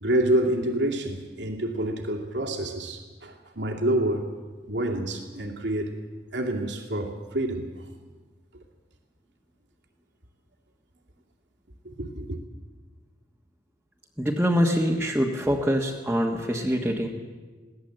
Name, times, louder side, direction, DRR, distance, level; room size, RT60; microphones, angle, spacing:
voice 1, 0.0-4.3 4.7-5.9 6.3-7.7 11.8-12.4, right 1 dB, 75° right, 1 dB, 2.5 m, -27 dB
voice 2, 14.2-17.1, equal, 5° right, -2 dB, 1.4 m, -24 dB
22.0 x 17.0 x 7.8 m, 1.4 s
head